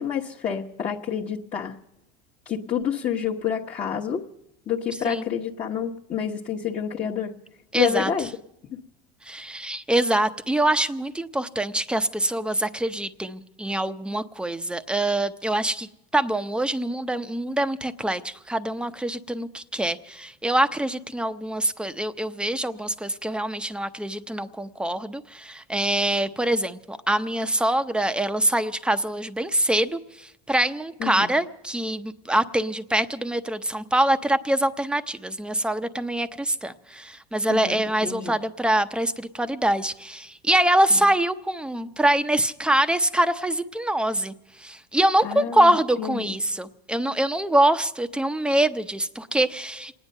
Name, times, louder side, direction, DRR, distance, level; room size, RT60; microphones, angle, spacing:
voice 1, 0.0-1.8 2.4-4.3 4.7-7.4 7.7-8.3 8.7-8.8 31.0-31.3 37.5-38.4 40.9-41.0 45.2-46.4, left 8 dB, 35° left, -4 dB, 1.1 m, -29 dB
voice 2, 7.7-8.1 9.3-44.3 44.6-49.9, right 1 dB, 5° right, 10 dB, 0.7 m, -24 dB
27.0 x 9.8 x 5.4 m, 0.83 s
supercardioid pair, 115°, 21 cm